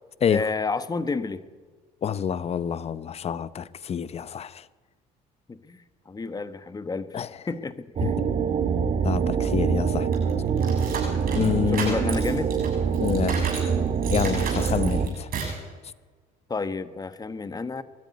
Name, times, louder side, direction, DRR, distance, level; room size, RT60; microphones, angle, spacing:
voice 1, 0.3-1.4 5.5-8.2 11.7-12.5 16.5-17.8, left 4 dB, 20° left, 1.2 m, -31 dB
voice 2, 2.0-4.7 7.1-7.3 8.0-8.1 9.0-10.1 11.3-12.0 13.0-13.5 14.1-15.3, left 7 dB, 40° left, 0.7 m, -27 dB
sound 1, 8.0-15.1, right 6 dB, 45° right, 1.8 m, -25 dB
sound 2, 10.1-13.7 14.0-15.6, right 5 dB, 60° right, 7.8 m, -34 dB
20.5 x 13.5 x 9.6 m
cardioid pair, 110°, 17 cm